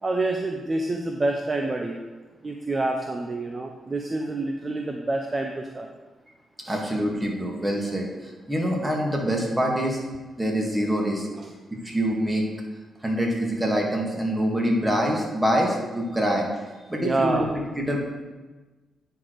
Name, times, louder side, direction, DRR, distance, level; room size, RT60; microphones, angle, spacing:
voice 1, 0.0-2.0 2.4-5.9 6.6-6.8 11.4-11.6 17.0-17.5, right 2 dB, 35° right, 3 dB, 0.7 m, -27 dB
voice 2, 6.7-10.0 10.4-11.3 11.8-12.4 13.0-16.5 16.9-17.5 17.8-18.0, equal, 15° right, -1 dB, 2.2 m, -25 dB
9.3 x 4.6 x 4.8 m, 1.2 s
cardioid pair, 65°, 0 cm